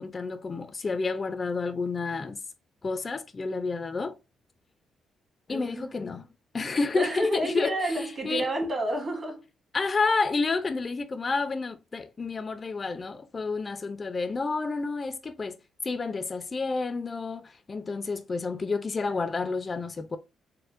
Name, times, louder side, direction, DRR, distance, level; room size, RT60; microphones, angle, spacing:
voice 1, 0.0-2.4 2.8-4.1 5.5-6.2 6.5-7.7 8.2-8.5 9.7-15.5 15.8-20.2, left 4 dB, 35° left, 0.4 m, -30 dB
voice 2, 5.5-5.9 6.9-9.5, right 1 dB, 35° right, 1.3 m, -29 dB
4.2 x 2.0 x 2.5 m
cardioid pair, 90°, 0 cm